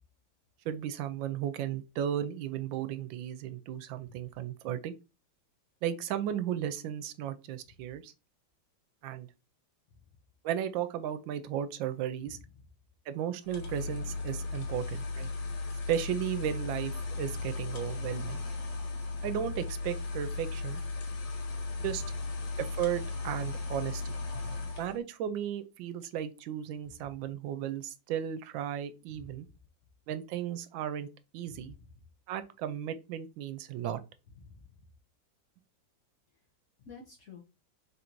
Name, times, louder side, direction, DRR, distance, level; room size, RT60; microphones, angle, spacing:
voice 1, 0.6-4.9 5.8-8.1 9.0-9.3 10.4-12.4 13.1-15.3 15.9-18.4 19.2-20.8 21.8-22.0 22.6-24.1 24.8-29.5 30.1-31.1 31.3-31.7 32.3-34.0, right 10 dB, 85° right, 1.3 m, -35 dB
sound 1, 13.4-25.0, left 3 dB, 75° left, 1.6 m, -36 dB
voice 2, 36.8-37.4, left 5 dB, 60° left, 0.8 m, -50 dB
3.8 x 2.6 x 4.3 m
omnidirectional pair, 2.0 m